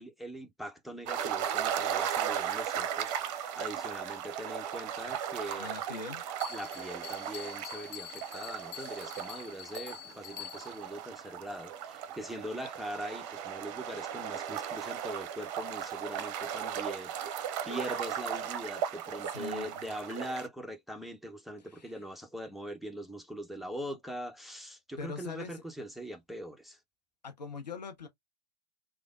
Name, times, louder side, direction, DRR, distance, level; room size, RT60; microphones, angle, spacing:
voice 1, 0.0-5.7 6.5-26.8, equal, ahead, 0.6 m, -42 dB
sound 1, 1.1-20.5, right 9 dB, 50° right, 0.6 m, -36 dB
voice 2, 5.6-6.2 19.3-19.8 21.7-21.9 25.0-25.6 27.2-28.1, left 4 dB, 80° left, 0.8 m, -42 dB
Bell, 6.4-10.9, left 15 dB, 50° left, 0.7 m, -46 dB
3.2 x 2.2 x 2.3 m
figure-of-eight pair, 90°, 21 cm